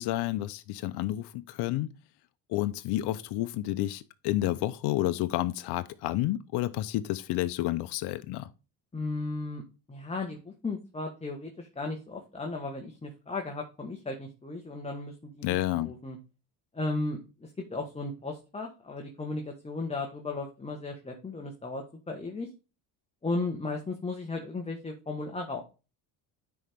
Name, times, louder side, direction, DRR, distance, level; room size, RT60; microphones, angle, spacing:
voice 1, 0.0-1.9 2.5-8.5 15.4-15.9, left 15 dB, 70° left, 0.7 m, -30 dB
voice 2, 8.9-9.6 9.9-16.2 16.7-22.5 23.2-25.6, left 3 dB, 15° left, 1.2 m, -35 dB
9.8 x 4.3 x 3.4 m
cardioid pair, 105°, 42 cm